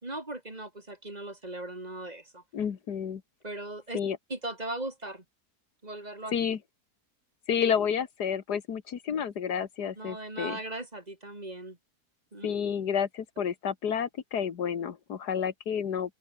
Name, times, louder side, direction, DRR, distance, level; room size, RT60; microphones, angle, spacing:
voice 1, 0.0-2.4 3.4-4.0 4.3-5.2 5.8-6.3 10.0-11.8 12.3-12.5, right 1 dB, 25° right, 2.9 m, -38 dB
voice 2, 2.5-3.2 3.9-4.2 6.3-6.6 7.5-10.6 12.4-16.1, left 7 dB, 90° left, 2.1 m, -30 dB
open air
omnidirectional pair, 1.7 m